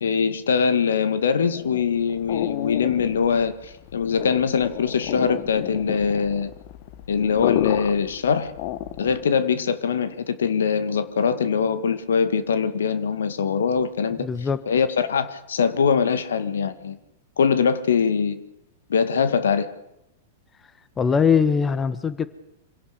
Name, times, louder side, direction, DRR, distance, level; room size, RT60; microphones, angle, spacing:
voice 1, 0.0-6.5 7.1-8.5 9.0-14.3 14.7-17.0 17.4-18.4 18.9-19.7, left 6 dB, 75° left, 12 dB, 2.0 m, -22 dB
sound 1, 1.5-9.3, left 13 dB, 50° left, 1.4 m, -32 dB
voice 2, 14.2-14.6 21.0-22.3, left 6 dB, 20° left, 14 dB, 1.3 m, -21 dB
26.0 x 17.0 x 6.9 m, 0.85 s
hypercardioid pair, 105°, 0 cm